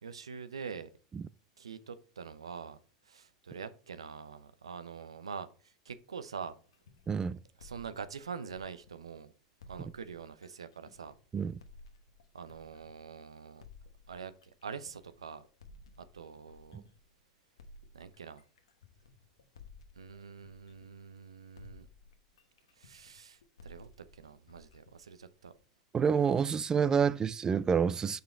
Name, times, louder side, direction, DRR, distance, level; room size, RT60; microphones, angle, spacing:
voice 1, 0.0-0.9 1.6-2.8 3.0-6.6 7.6-9.3 9.7-11.1 12.3-13.6 14.1-14.3 14.6-15.4 16.0-16.8 17.9-18.4 20.0-21.9 22.8-25.5, right 6 dB, 85° right, 0.7 m, -45 dB
sound 1, 6.7-9.2 9.6-13.1 13.6-17.1 17.6-21.3 21.6-25.6, left 2 dB, 80° left, 1.1 m, -56 dB
voice 2, 7.1-7.4 11.3-11.6 16.7-16.8 25.9-28.2, right 6 dB, 25° right, 0.4 m, -28 dB
6.5 x 5.5 x 4.3 m
hypercardioid pair, 90°, 3 cm